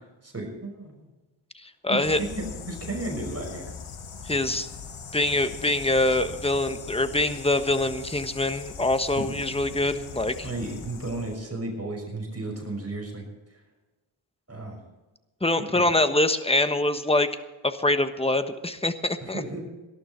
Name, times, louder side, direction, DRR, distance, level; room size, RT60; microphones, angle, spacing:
voice 1, 0.2-1.1 1.9-3.7 4.3-4.4 9.1-9.3 10.4-13.2 13.5-13.6 14.5-14.8 15.6-15.9 19.2-19.7, right 2 dB, 30° right, 1 dB, 5.9 m, -34 dB
voice 2, 1.6-2.2 4.2-4.7 5.1-10.3 15.4-17.3 17.6-19.4, left 2 dB, 10° left, 9 dB, 1.3 m, -24 dB
sound 1, 2.0-11.4, left 5 dB, 75° left, 1.7 m, -40 dB
19.0 x 12.5 x 4.5 m, 1.1 s
cardioid pair, 70°, 49 cm